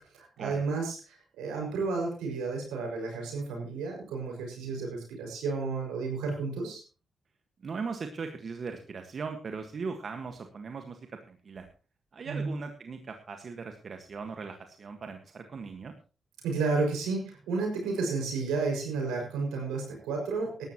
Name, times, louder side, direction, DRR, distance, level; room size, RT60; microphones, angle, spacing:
voice 1, 0.0-6.8 12.2-12.5 16.4-20.6, right 4 dB, 90° right, 1 dB, 5.9 m, -32 dB
voice 2, 7.6-11.7 12.1-15.9, right 5 dB, 60° right, 6 dB, 1.6 m, -39 dB
18.0 x 13.0 x 3.0 m, 0.35 s
supercardioid pair, 45°, 0 cm